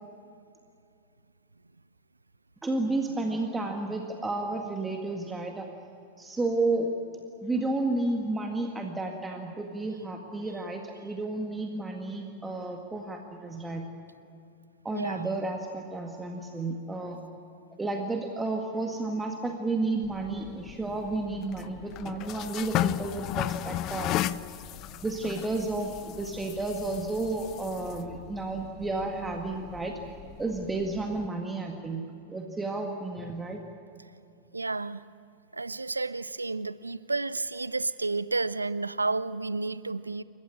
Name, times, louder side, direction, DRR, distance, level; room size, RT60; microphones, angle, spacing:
voice 1, 2.6-5.7 6.2-6.9 7.4-13.9 14.8-17.2 17.8-24.2 25.0-29.9 30.4-32.0 32.3-33.6, right 2 dB, 10° right, 2 dB, 1.9 m, -32 dB
voice 2, 14.9-15.3 34.5-35.0 35.5-40.2, right 3 dB, 80° right, 18 dB, 0.5 m, -31 dB
sound 1, 20.0-31.3, left 13 dB, 35° left, 0.5 m, -36 dB
28.5 x 15.5 x 8.7 m, 2.5 s
figure-of-eight pair, 90°, 0 cm